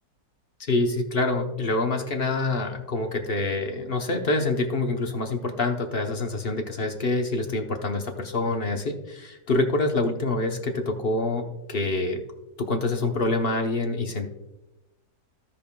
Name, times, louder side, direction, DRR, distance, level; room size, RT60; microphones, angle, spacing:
voice 1, 0.7-12.2 12.6-14.3, left 2 dB, 45° left, 4 dB, 1.0 m, -26 dB
16.0 x 5.4 x 2.3 m, 0.98 s
omnidirectional pair, 1.7 m